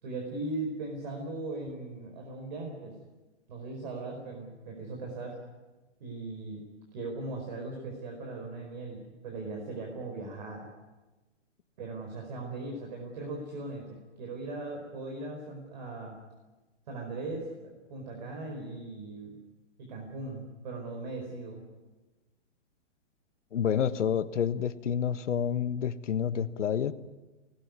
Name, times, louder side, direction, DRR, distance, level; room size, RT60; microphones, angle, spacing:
voice 1, 0.0-2.9 3.5-5.4 6.0-6.6 6.9-10.7 11.8-16.1 16.9-19.4 19.8-21.6, right 2 dB, 40° right, 1 dB, 4.8 m, -39 dB
voice 2, 23.5-26.9, left 8 dB, 85° left, 12 dB, 1.4 m, -29 dB
24.5 x 19.5 x 9.6 m, 1.2 s
hypercardioid pair, 175°, 35 cm